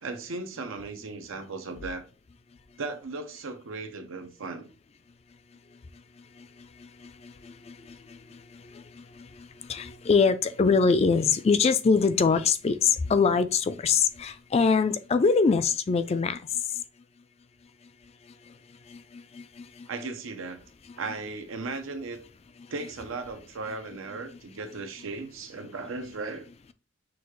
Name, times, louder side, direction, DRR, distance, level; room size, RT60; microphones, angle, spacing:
voice 1, 0.0-2.1 2.8-4.7 19.9-20.6 21.0-22.2 22.7-26.5, right 3 dB, 90° right, 0.8 m, -36 dB
voice 2, 9.7-16.4 19.4-19.5, left 5 dB, 30° left, 0.3 m, -22 dB
6.2 x 2.4 x 3.1 m
head